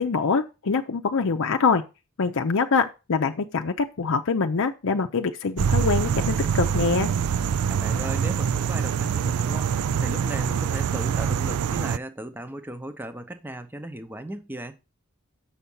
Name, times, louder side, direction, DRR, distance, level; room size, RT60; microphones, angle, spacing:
voice 1, 0.0-1.8 2.2-7.1, left 5 dB, 60° left, 0.6 m, -24 dB
sound 1, 5.6-12.0, right 7 dB, 80° right, 0.4 m, -25 dB
voice 2, 7.7-9.7 10.0-14.8, right 1 dB, 10° right, 0.7 m, -37 dB
7.2 x 5.7 x 5.5 m
head